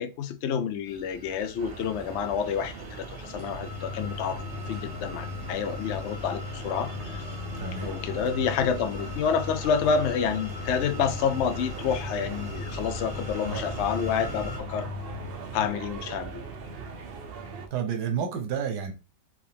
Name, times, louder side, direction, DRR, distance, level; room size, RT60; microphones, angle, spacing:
voice 1, 0.0-7.2 7.8-14.9 15.5-16.4, left 7 dB, 65° left, 0.7 m, -29 dB
sound 1, 0.9-14.6, equal, 15° right, 1.0 m, -40 dB
sound 2, 1.6-17.7, right 5 dB, 55° right, 0.7 m, -41 dB
sound 3, 3.2-15.4, left 7 dB, 85° left, 1.3 m, -40 dB
voice 2, 17.7-18.9, right 7 dB, 85° right, 1.4 m, -30 dB
4.7 x 3.2 x 3.4 m
omnidirectional pair, 1.7 m